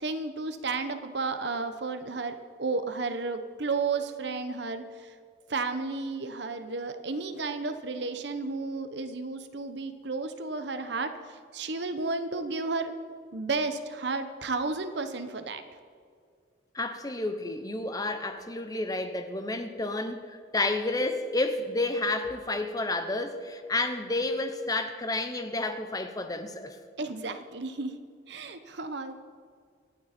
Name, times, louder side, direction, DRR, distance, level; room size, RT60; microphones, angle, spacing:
voice 1, 0.0-5.1 5.5-12.9 13.3-15.6 27.0-28.0 28.3-29.1, right 3 dB, 60° right, 9 dB, 1.0 m, -32 dB
voice 2, 16.7-26.8, left 2 dB, 20° left, 7 dB, 0.9 m, -30 dB
25.5 x 9.4 x 4.4 m, 2.1 s
head